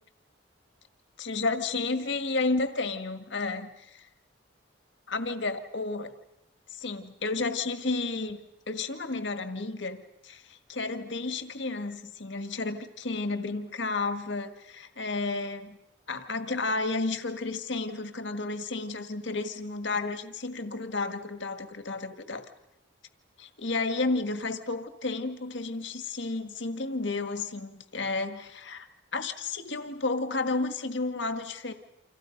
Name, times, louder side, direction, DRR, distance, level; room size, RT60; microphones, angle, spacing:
voice 1, 1.2-4.1 5.1-6.1 6.7-8.4 8.7-15.8 16.1-22.4 23.4-31.7, left 3 dB, 65° left, 9 dB, 1.7 m, -32 dB
29.0 x 26.5 x 5.3 m, 0.86 s
head